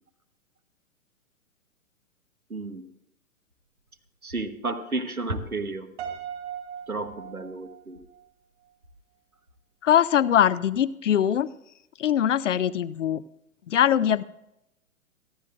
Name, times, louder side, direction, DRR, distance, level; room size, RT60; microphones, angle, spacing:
voice 1, 2.5-2.9 4.2-5.9 6.9-8.0, right 2 dB, 90° right, 9 dB, 1.5 m, -32 dB
Piano, 6.0-8.2, right 8 dB, 50° right, 2.6 m, -38 dB
voice 2, 9.8-11.5 12.0-13.2 13.7-14.2, left 10 dB, 60° left, 18 dB, 0.6 m, -22 dB
28.0 x 10.5 x 2.6 m, 0.83 s
figure-of-eight pair, 115°, 42 cm